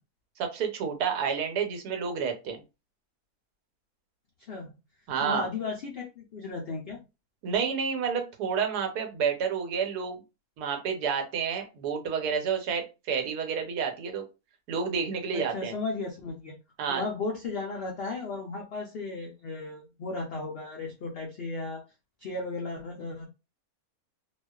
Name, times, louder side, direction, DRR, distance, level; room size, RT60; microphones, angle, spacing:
voice 1, 0.4-2.6 5.1-5.5 7.4-10.2 10.6-14.3 14.7-15.7 16.8-17.0, right 6 dB, 80° right, 4 dB, 1.2 m, -29 dB
voice 2, 5.2-7.0 15.3-16.5 16.9-21.8 22.2-23.2, left 3 dB, 90° left, -1 dB, 0.5 m, -35 dB
2.4 x 2.3 x 2.2 m, 0.27 s
omnidirectional pair, 1.6 m